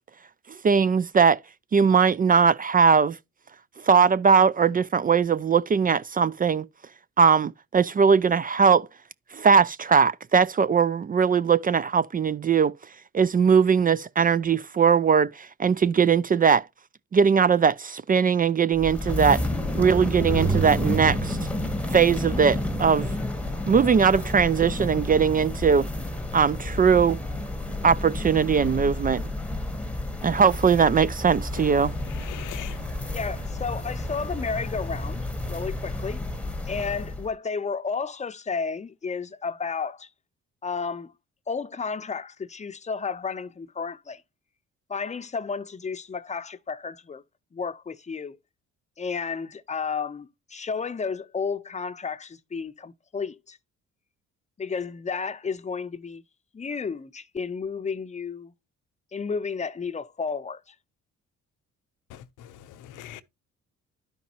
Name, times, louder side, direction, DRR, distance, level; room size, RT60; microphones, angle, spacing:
voice 1, 0.6-1.4 1.7-3.2 3.8-6.6 7.2-8.9 9.3-12.7 13.1-16.7 17.1-19.4 19.8-21.4 21.9-23.1 23.7-25.9 26.3-27.2 27.8-29.2 30.2-31.9, right 6 dB, 30° right, 0.4 m, -20 dB
sound 1, 18.7-37.3, left 1 dB, 5° left, 1.2 m, -30 dB
voice 2, 32.0-33.1 62.1-63.2, left 12 dB, 85° left, 0.8 m, -42 dB
voice 3, 33.1-36.2 36.7-40.1 40.6-41.1 41.5-44.2 44.9-47.2 47.5-48.4 49.0-53.6 54.6-56.2 56.5-58.5 59.1-60.7, left 5 dB, 25° left, 0.7 m, -32 dB
12.0 x 5.2 x 2.9 m
cardioid pair, 90°, 30 cm